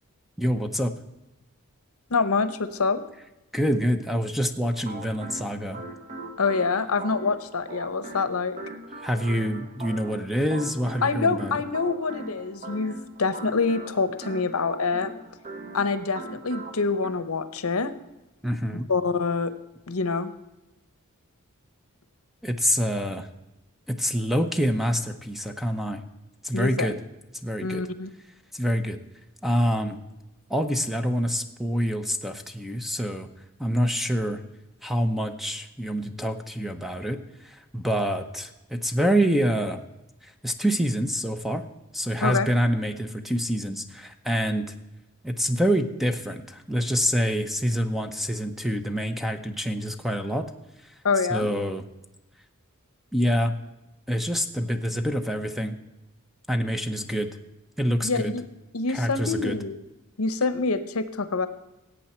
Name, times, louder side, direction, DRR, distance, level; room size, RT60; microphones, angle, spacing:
voice 1, 0.4-0.9 3.5-5.8 9.0-11.6 18.4-18.9 22.4-23.3 23.9-26.0 26.4-27.0 27.4-27.8 28.5-29.0 29.4-30.0 30.5-33.3 33.6-34.4 34.8-37.2 37.7-39.8 40.4-41.6 41.9-44.6 45.2-50.5 51.3-51.8 53.1-53.5 54.1-55.8 56.5-57.3 57.8-58.3 58.9-59.5, equal, ahead, 8 dB, 0.7 m, -26 dB
voice 2, 2.1-3.0 6.4-8.6 11.0-15.1 15.7-17.9 18.7-19.5 19.9-20.3 26.5-26.9 27.6-28.1 42.2-42.5 51.0-51.5 58.0-58.4 58.7-59.8 60.2-61.5, left 4 dB, 70° left, 12 dB, 0.9 m, -26 dB
sound 1, 4.7-17.1, right 2 dB, 35° right, 1.2 m, -40 dB
17.5 x 8.3 x 4.4 m, 0.99 s
head